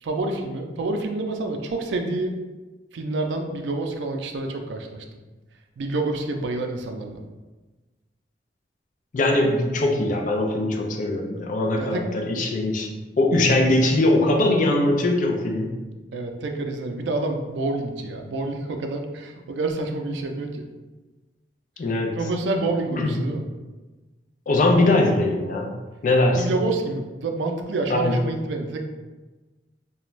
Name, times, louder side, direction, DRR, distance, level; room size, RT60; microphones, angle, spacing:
voice 1, 0.0-2.4 2.9-5.1 5.8-7.2 11.8-12.0 16.1-20.6 22.2-23.4 26.3-28.8, right 2 dB, 80° right, 4 dB, 0.4 m, -28 dB
voice 2, 9.1-12.9 13.2-15.8 21.8-22.2 23.0-23.2 24.5-25.7 26.0-26.4 27.9-28.2, left 2 dB, 45° left, 1 dB, 0.4 m, -21 dB
2.5 x 2.2 x 3.1 m, 1.2 s
head